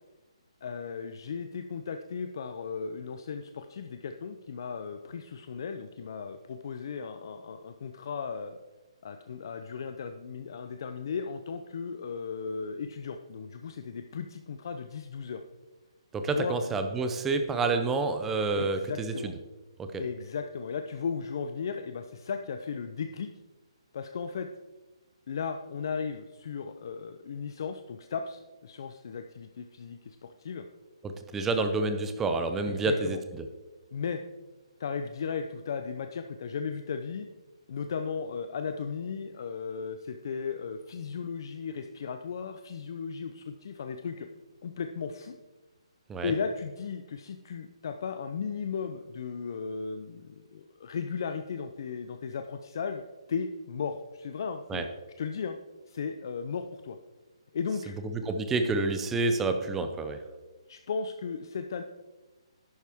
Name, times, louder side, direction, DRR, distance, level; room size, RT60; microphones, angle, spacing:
voice 1, 0.6-8.6 9.0-15.4 16.3-16.6 18.6-19.3 20.0-23.3 23.9-24.5 25.3-30.7 32.7-33.2 33.9-34.2 34.8-37.3 37.7-44.3 44.6-45.4 46.2-53.0 53.3-54.8 55.2-55.6 55.9-57.0 57.5-57.9 60.7-61.8, left 6 dB, 40° left, 7 dB, 0.5 m, -36 dB
voice 2, 16.1-19.3 19.8-19.9 31.0-33.2 46.1-46.3 54.7-54.8 58.1-60.2, right 3 dB, 5° right, 7 dB, 0.5 m, -28 dB
11.0 x 8.9 x 3.5 m, 1.2 s
hypercardioid pair, 175°, 3 cm